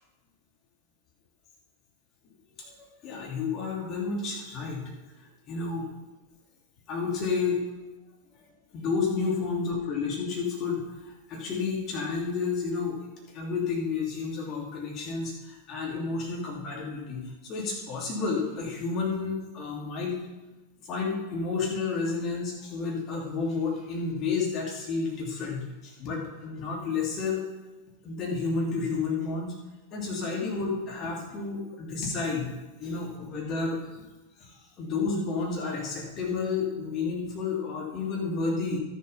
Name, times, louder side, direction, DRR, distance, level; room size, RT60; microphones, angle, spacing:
voice 1, 3.0-4.9 5.5-5.9 6.9-7.6 8.7-13.0 13.3-20.2 20.8-27.4 28.0-29.5 29.9-32.5 32.8-34.0 34.4-38.8, left 4 dB, 35° left, -2 dB, 3.1 m, -31 dB
12.0 x 7.3 x 5.7 m, 1.1 s
figure-of-eight pair, 90°, 0 cm